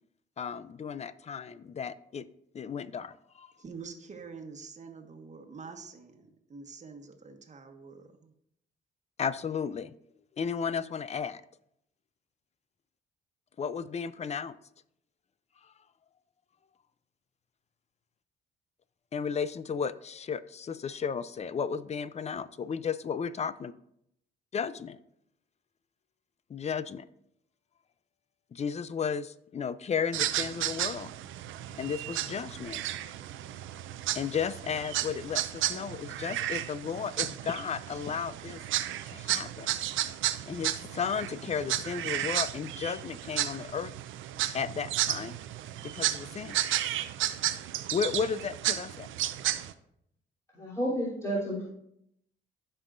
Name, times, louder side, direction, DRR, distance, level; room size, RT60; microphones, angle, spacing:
voice 1, 0.4-2.3 2.5-3.5 9.2-9.9 10.4-11.4 13.6-14.6 19.1-23.7 24.5-25.0 26.5-27.1 28.5-31.1 31.8-32.8 34.1-38.6 39.1-39.7 40.5-43.9 44.5-45.4 45.8-46.6 47.9-49.1, left 6 dB, 35° left, 16 dB, 0.4 m, -34 dB
voice 2, 3.6-8.3, right 5 dB, 35° right, 4 dB, 1.4 m, -46 dB
sound 1, 30.1-49.7, right 13 dB, 80° right, 0.5 m, -33 dB
voice 3, 50.5-51.6, equal, 15° left, -8 dB, 3.2 m, -31 dB
15.0 x 5.5 x 2.5 m, 0.76 s
cardioid pair, 90°, 20 cm